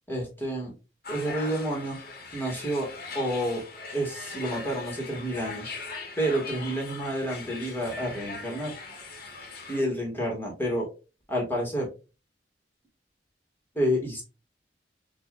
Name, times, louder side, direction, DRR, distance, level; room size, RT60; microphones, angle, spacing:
voice 1, 0.1-0.7 1.1-2.0 2.3-2.9 3.2-3.6 3.9-5.7 6.2-8.7 9.7-10.9 11.3-11.9 13.8-14.2, equal, 10° left, -1 dB, 1.8 m, -29 dB
sound 1, 1.0-9.8, left 3 dB, 60° left, 1.4 m, -40 dB
6.7 x 2.7 x 2.6 m, 0.30 s
head